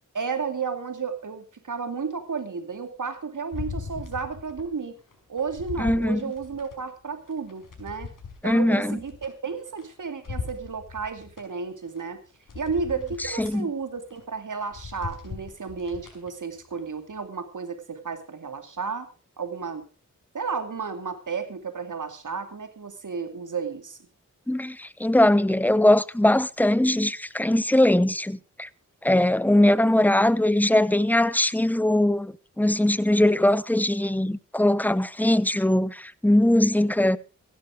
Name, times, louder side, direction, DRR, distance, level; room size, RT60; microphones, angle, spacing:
voice 1, 0.1-4.9 5.3-8.1 8.4-12.2 12.5-19.1 19.4-19.8 20.3-24.0, right 5 dB, 70° right, 2.6 m, -32 dB
sound 1, 3.5-4.7 5.1-6.8 7.3-9.9 10.2-11.4 12.0-12.1 12.5-13.6 14.0-14.2 14.6-16.3 16.8-16.9, left 4 dB, 85° left, 5.1 m, -39 dB
voice 2, 5.8-6.2 8.4-9.0 13.4-13.7 24.5-28.7 29.0-37.2, left 1 dB, 5° left, 0.7 m, -21 dB
16.0 x 11.5 x 4.9 m
cardioid pair, 55°, 31 cm